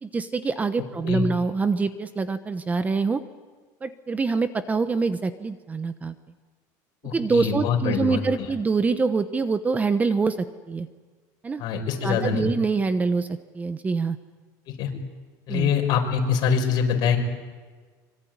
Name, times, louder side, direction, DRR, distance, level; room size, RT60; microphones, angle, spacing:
voice 1, 0.0-3.2 3.8-6.1 7.1-10.9 11.4-11.6 12.0-14.2 15.5-15.7, right 4 dB, 15° right, 11 dB, 1.0 m, -25 dB
voice 2, 7.0-8.2 11.6-12.5 14.8-14.9 15.5-17.2, left 6 dB, 50° left, 3 dB, 5.9 m, -24 dB
25.0 x 24.0 x 9.6 m, 1.5 s
cardioid pair, 140°, 9 cm